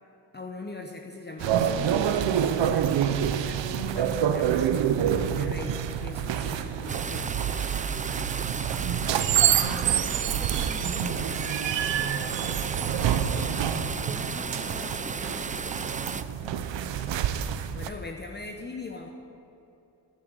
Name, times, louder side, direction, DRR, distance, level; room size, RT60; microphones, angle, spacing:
voice 1, 0.3-4.8 5.1-7.3 17.7-19.1, left 3 dB, 25° left, 2 dB, 0.9 m, -40 dB
sound 1, 1.4-17.9, right 9 dB, 85° right, 0.7 m, -27 dB
sound 2, 6.9-16.2, right 5 dB, 20° right, 0.4 m, -35 dB
voice 2, 8.6-9.9 10.3-17.0, equal, ahead, -8 dB, 2.8 m, -45 dB
10.5 x 9.4 x 7.9 m, 2.9 s
cardioid pair, 85°, 43 cm